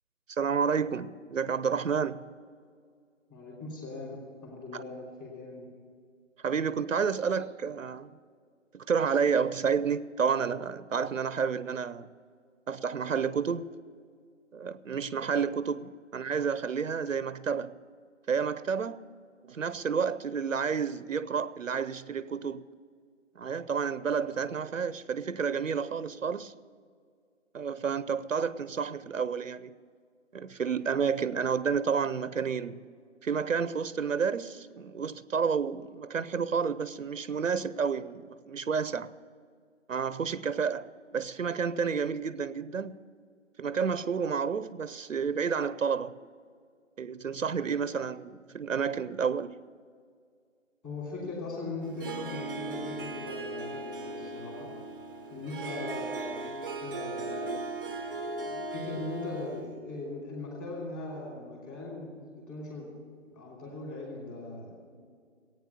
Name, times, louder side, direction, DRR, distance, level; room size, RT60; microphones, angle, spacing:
voice 1, 0.3-2.3 4.7-4.8 6.4-8.2 8.7-12.1 12.7-13.7 14.5-17.8 18.3-19.0 19.5-22.7 23.4-26.5 27.5-29.7 30.3-32.8 33.2-39.1 39.9-43.0 43.6-46.2 47.0-49.6, right 6 dB, 85° right, 0.8 m, -30 dB
voice 2, 3.3-5.7 50.8-54.8 55.3-57.7 58.2-65.0, left 2 dB, 10° left, 2.9 m, -40 dB
Harp, 51.8-59.7, right 2 dB, 15° right, 0.8 m, -38 dB
17.0 x 9.0 x 8.2 m
figure-of-eight pair, 160°, 38 cm